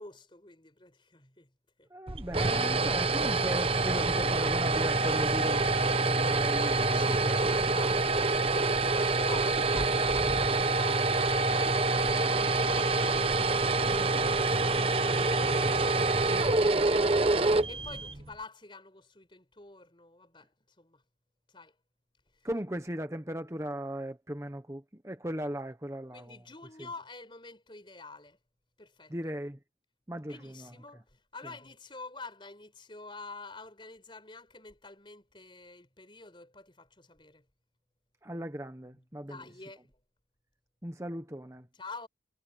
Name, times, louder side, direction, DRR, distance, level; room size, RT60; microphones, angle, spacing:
voice 1, 0.0-1.5 1.8-1.9 6.9-21.0 21.5-21.7 26.1-28.4 28.8-29.1 30.1-37.4 38.9-39.9 41.5-42.1, left 3 dB, 25° left, 4.8 m, -49 dB
voice 2, 1.9-7.7 16.4-16.5 22.4-26.3 29.1-29.6 30.1-30.7 38.2-39.4 40.8-41.7, right 1 dB, 15° right, 1.2 m, -38 dB
sound 1, 2.1-18.3, right 3 dB, 30° right, 0.9 m, -26 dB
head